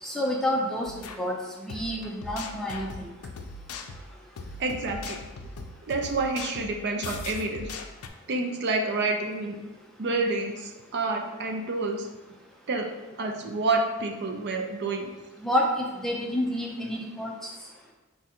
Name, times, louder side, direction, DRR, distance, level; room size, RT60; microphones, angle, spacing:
voice 1, 0.0-3.1 15.4-17.3, equal, ahead, -2 dB, 0.5 m, -29 dB
sound 1, 0.9-1.2 1.7-8.1, left 3 dB, 85° left, 0.4 m, -40 dB
voice 2, 4.6-5.2 5.9-7.7 8.3-9.6 10.0-12.1 12.7-12.9 13.2-15.1, right 3 dB, 50° right, 3 dB, 0.4 m, -28 dB
4.6 x 2.5 x 4.2 m, 1.1 s
head